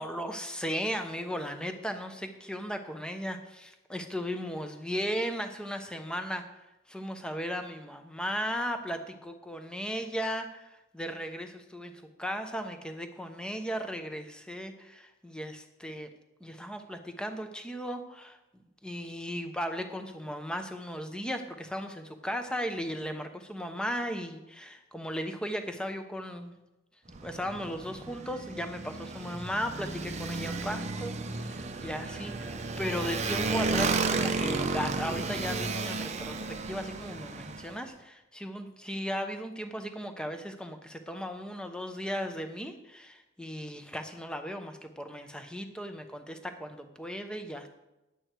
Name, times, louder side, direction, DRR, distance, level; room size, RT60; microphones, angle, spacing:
voice 1, 0.0-6.4 6.9-16.1 16.4-18.4 18.8-26.6 27.2-47.7, equal, 5° left, 7 dB, 0.8 m, -36 dB
Motorcycle, 27.1-37.8, right 3 dB, 35° right, 0.7 m, -33 dB
10.0 x 8.6 x 4.5 m, 0.98 s
head